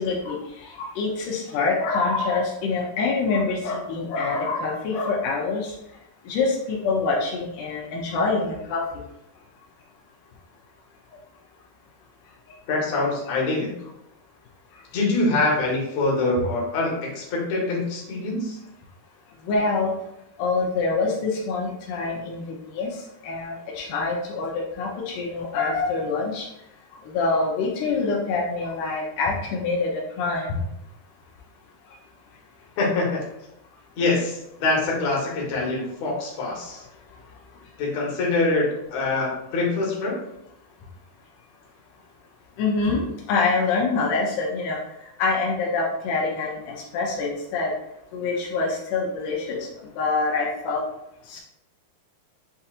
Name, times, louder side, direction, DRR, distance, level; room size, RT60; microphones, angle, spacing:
voice 1, 0.0-5.7 6.3-9.0 19.4-20.0 20.4-22.4 22.7-26.5 27.0-30.6 42.6-44.8 45.2-47.7 48.1-49.7 50.0-50.9 51.3-51.4, left 3 dB, 90° left, -2 dB, 1.8 m, -25 dB
voice 2, 12.7-13.7 14.9-18.6 32.8-33.2 34.0-36.9 37.8-40.2, left 2 dB, 65° left, -3 dB, 1.8 m, -24 dB
7.6 x 2.7 x 2.4 m, 0.82 s
omnidirectional pair, 4.5 m